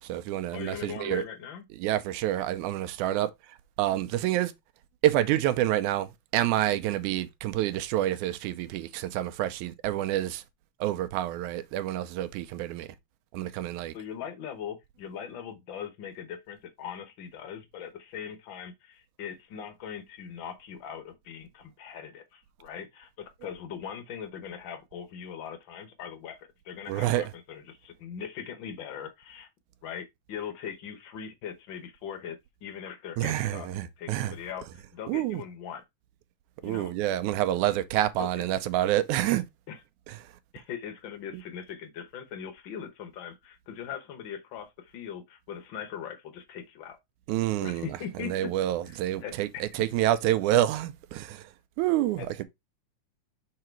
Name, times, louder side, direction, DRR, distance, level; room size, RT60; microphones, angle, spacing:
voice 1, 0.0-1.2 1.7-4.5 5.0-10.4 10.8-12.9 13.3-13.9 26.9-27.3 33.2-34.4 35.1-35.4 36.6-39.5 40.1-40.3 41.3-41.4 47.3-52.4, right 13 dB, 85° right, 2.0 m, -28 dB
voice 2, 0.5-1.6 13.9-29.5 29.8-33.7 34.0-35.8 36.6-36.9 38.2-38.3 39.7-39.8 40.5-47.0 47.6-48.5 48.9-49.6 52.2-52.4, left 8 dB, 75° left, 1.1 m, -40 dB
5.8 x 3.9 x 4.4 m
omnidirectional pair, 3.6 m